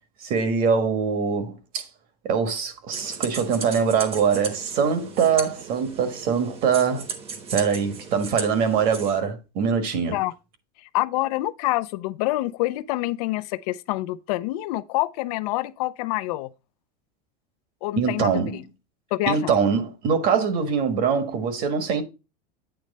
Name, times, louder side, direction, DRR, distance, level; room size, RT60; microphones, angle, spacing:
voice 1, 0.2-1.9 2.2-7.0 7.5-10.2 18.0-18.6 19.3-22.0, right 6 dB, 45° right, 1.4 m, -23 dB
sound 1, 2.9-9.2, right 4 dB, 30° right, 1.1 m, -36 dB
voice 2, 10.9-16.5 17.8-18.6 19.1-19.5, left 18 dB, 65° left, 0.5 m, -26 dB
8.8 x 3.2 x 5.3 m
supercardioid pair, 150°, 21 cm